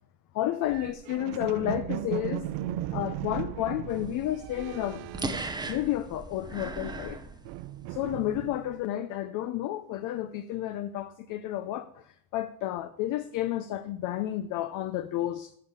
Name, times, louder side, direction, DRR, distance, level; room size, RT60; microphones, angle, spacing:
voice 1, 0.3-2.5 2.9-5.4 5.7-7.2 7.9-12.0 12.3-15.5, left 13 dB, 45° left, 0.7 m, -31 dB
sound 1, 0.7-6.3 6.6-8.8, right 13 dB, 60° right, 0.7 m, -37 dB
sound 2, 3.9-8.0, right 3 dB, 10° right, 0.8 m, -38 dB
11.5 x 7.3 x 8.2 m
cardioid pair, 170°, 45 cm